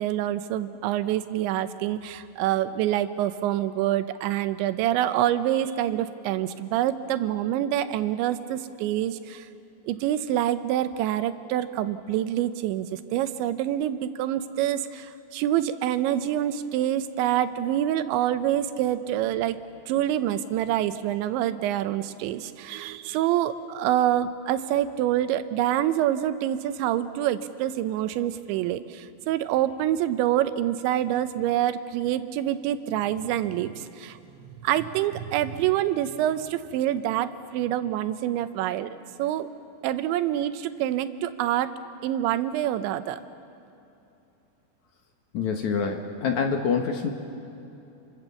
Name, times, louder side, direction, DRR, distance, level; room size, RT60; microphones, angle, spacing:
voice 1, 0.0-9.5 9.8-19.6 19.9-39.5 39.8-41.7 42.0-43.2, right 12 dB, 90° right, 11 dB, 3.2 m, -26 dB
voice 2, 45.3-47.1, left 6 dB, 60° left, 4 dB, 2.1 m, -26 dB
29.5 x 25.0 x 7.1 m, 2.8 s
omnidirectional pair, 5.1 m